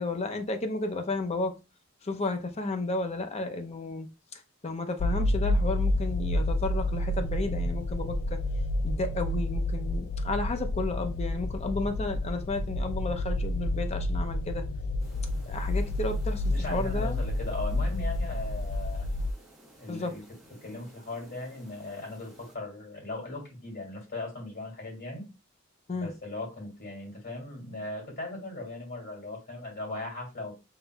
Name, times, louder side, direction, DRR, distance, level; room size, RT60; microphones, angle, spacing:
voice 1, 0.0-1.6 2.0-8.4 8.8-14.6 15.5-17.2 19.9-20.1 25.9-26.1, left 2 dB, 30° left, 0.6 m, -33 dB
sound 1, 5.0-19.3, left 1 dB, 80° left, 0.4 m, -29 dB
sound 2, 15.0-22.6, right 1 dB, ahead, 1.1 m, -56 dB
voice 2, 16.5-19.1 19.8-20.2 20.6-25.2 25.9-30.6, left 2 dB, 55° left, 2.6 m, -38 dB
5.6 x 3.0 x 2.3 m
head